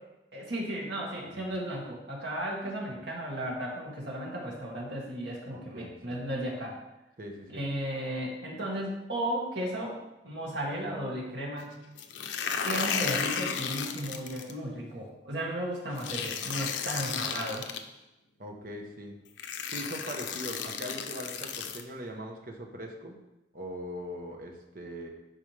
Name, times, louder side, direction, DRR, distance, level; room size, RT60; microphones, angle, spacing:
voice 1, 0.3-6.8 7.5-10.0 10.2-11.8 12.6-17.6, right 1 dB, 75° right, -3 dB, 2.2 m, -35 dB
voice 2, 1.2-1.5 2.9-3.0 5.5-6.2 7.2-7.6 18.4-19.2 19.6-23.2 23.5-25.1, equal, 50° right, 2 dB, 1.1 m, -41 dB
sound 1, 12.0-14.5 16.0-17.8 18.8-18.9 19.4-21.8, left 6 dB, 85° left, 0.7 m, -33 dB
11.0 x 5.0 x 3.4 m, 0.94 s
head